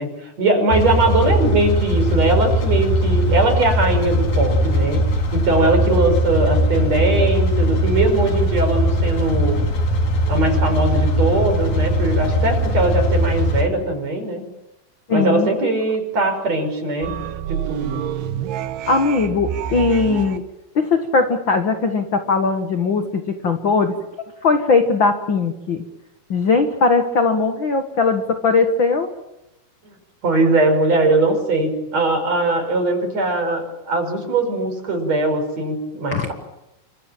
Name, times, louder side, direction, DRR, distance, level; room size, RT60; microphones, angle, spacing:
voice 1, 0.0-5.0 5.3-9.6 10.3-14.4 15.1-17.1 17.4-18.0 30.2-36.3, right 2 dB, 45° right, 6 dB, 6.3 m, -20 dB
sound 1, 0.7-13.6, equal, 65° left, 5.7 m, -19 dB
voice 2, 15.1-15.5 18.9-20.4 20.7-23.9 24.4-25.9 26.3-29.1 36.1-36.3, left 4 dB, 50° left, 6 dB, 1.5 m, -19 dB
sound 2, 17.0-20.4, right 11 dB, 80° right, 3.2 m, -28 dB
28.0 x 25.5 x 7.5 m, 0.91 s
omnidirectional pair, 4.5 m